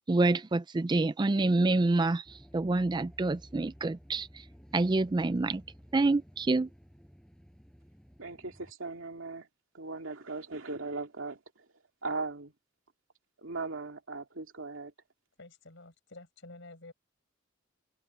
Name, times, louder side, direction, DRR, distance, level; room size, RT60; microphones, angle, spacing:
voice 1, 0.1-4.4 4.7-5.6 5.9-6.7, right 2 dB, 20° right, 0.4 m, -27 dB
sound 1, 2.2-8.7, equal, 5° left, 7.3 m, -55 dB
voice 2, 8.2-9.5 9.7-11.4 12.0-12.5 13.4-14.9, right 3 dB, 80° right, 2.4 m, -38 dB
voice 3, 15.4-16.9, left 2 dB, 65° left, 6.1 m, -50 dB
head